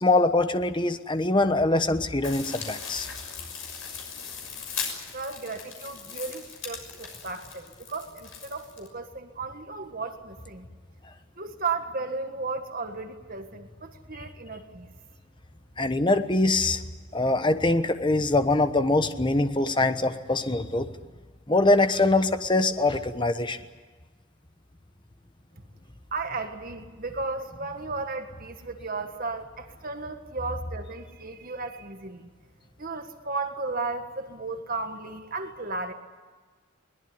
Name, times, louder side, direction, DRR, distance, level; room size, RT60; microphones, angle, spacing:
voice 1, 0.0-3.1 15.8-16.8 17.1-20.9 21.5-23.6, left 2 dB, 20° left, 9 dB, 1.1 m, -23 dB
sound 1, 2.2-8.9, left 6 dB, 65° left, 6.4 m, -38 dB
voice 2, 5.1-10.6 11.4-14.9 26.1-32.3 32.8-35.9, right 3 dB, 40° right, 6 dB, 1.7 m, -34 dB
22.0 x 20.0 x 9.8 m, 1.4 s
head